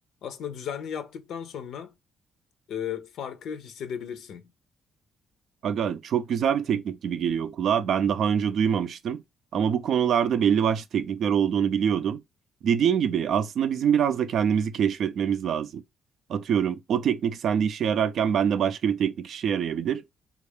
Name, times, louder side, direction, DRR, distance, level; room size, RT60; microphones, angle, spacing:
voice 1, 0.2-1.9 2.7-4.4, left 8 dB, 75° left, 0.5 m, -35 dB
voice 2, 5.6-9.2 9.5-12.2 12.6-15.8 16.3-20.0, right 8 dB, 65° right, 0.4 m, -24 dB
3.4 x 2.4 x 3.4 m
cardioid pair, 90°, 0 cm